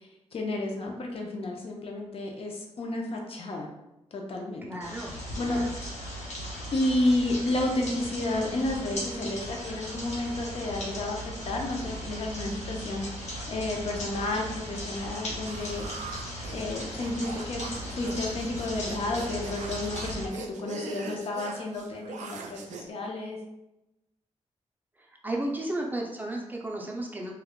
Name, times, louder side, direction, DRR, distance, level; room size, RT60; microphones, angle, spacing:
voice 1, 0.0-3.7 4.1-4.7 5.4-5.6 6.7-15.9 16.5-23.4, left 2 dB, 55° left, 1 dB, 0.5 m, -31 dB
voice 2, 4.6-5.2 5.5-5.7 25.0-27.3, right 1 dB, 15° right, -2 dB, 0.4 m, -34 dB
sound 1, 4.8-20.3, equal, 70° left, 1.0 m, -37 dB
sound 2, 15.4-22.9, right 4 dB, 90° right, 0.4 m, -42 dB
2.2 x 2.1 x 3.5 m, 0.92 s
cardioid pair, 100°, 12 cm